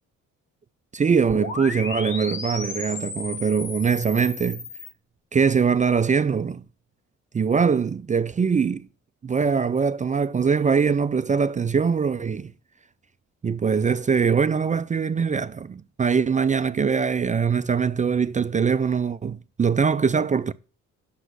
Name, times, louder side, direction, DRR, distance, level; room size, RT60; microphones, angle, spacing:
voice 1, 0.9-4.6 5.3-6.6 7.3-8.9 9.2-12.5 13.4-20.5, right 6 dB, 25° right, 0.4 m, -22 dB
sound 1, 1.3-4.9, left 3 dB, 40° left, 1.8 m, -34 dB
8.0 x 6.1 x 6.2 m
cardioid pair, 90°, 30 cm